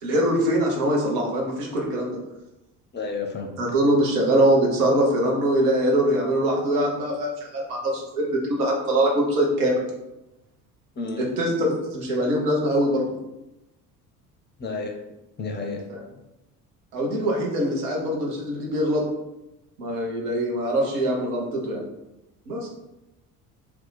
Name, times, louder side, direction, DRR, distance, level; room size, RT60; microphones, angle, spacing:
voice 1, 0.0-2.2 3.6-8.3 8.6-9.8 11.4-13.1 15.9-16.0 16.9-19.0 19.8-21.8 22.5-22.7, right 1 dB, 75° right, -2 dB, 0.9 m, -23 dB
voice 2, 2.9-3.6 10.9-11.3 14.6-15.0 15.4-15.8, left 3 dB, 25° left, 2 dB, 0.5 m, -31 dB
2.8 x 2.2 x 3.9 m, 0.94 s
figure-of-eight pair, 60°, 46 cm